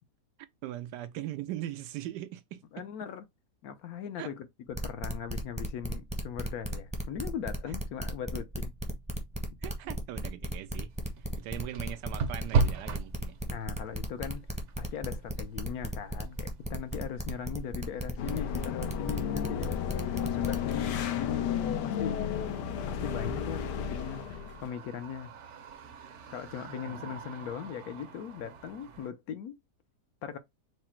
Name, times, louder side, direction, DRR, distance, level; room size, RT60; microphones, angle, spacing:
voice 1, 0.6-2.6 4.2-4.3 9.6-10.9 11.2-13.4 26.8-27.2, right 13 dB, 90° right, 1.2 m, -40 dB
voice 2, 2.7-3.2 3.6-8.7 13.5-14.5 14.8-22.2 22.9-25.3 26.3-29.6 30.2-30.4, left 8 dB, 70° left, 1.0 m, -39 dB
sound 1, 4.7-20.7, right 1 dB, 5° right, 0.6 m, -35 dB
sound 2, 10.9-29.1, right 4 dB, 60° right, 0.8 m, -39 dB
sound 3, 18.2-24.7, left 8 dB, 85° left, 1.3 m, -33 dB
4.9 x 2.0 x 4.3 m
omnidirectional pair, 1.8 m